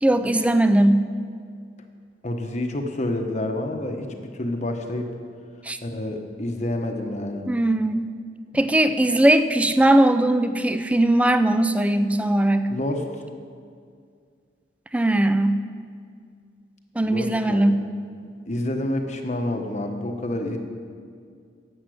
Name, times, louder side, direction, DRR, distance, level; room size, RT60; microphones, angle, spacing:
voice 1, 0.0-1.1 5.6-5.8 7.5-8.1 8.5-12.7 14.9-15.6 17.0-17.8, right 1 dB, 10° right, 10 dB, 0.4 m, -19 dB
voice 2, 2.2-4.1 4.3-5.1 5.8-7.5 12.7-13.2 17.0-17.8 18.5-20.6, left 1 dB, 40° left, 4 dB, 1.1 m, -28 dB
11.5 x 8.1 x 7.8 m, 2.2 s
head